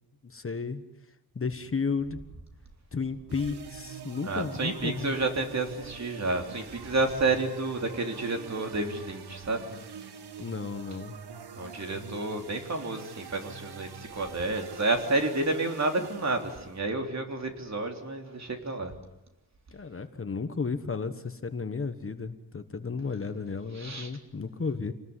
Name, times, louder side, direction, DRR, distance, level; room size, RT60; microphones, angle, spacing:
voice 1, 0.2-0.8 1.3-2.2 2.9-5.1 10.4-11.2 19.7-24.9, left 4 dB, 35° left, 9 dB, 1.4 m, -33 dB
sound 1, 3.3-16.8, right 7 dB, 90° right, 1.7 m, -45 dB
voice 2, 4.2-9.6 11.5-18.9 23.7-24.1, right 2 dB, 45° right, 4 dB, 3.6 m, -30 dB
28.0 x 20.0 x 9.8 m, 0.94 s
wide cardioid pair, 150°, 38 cm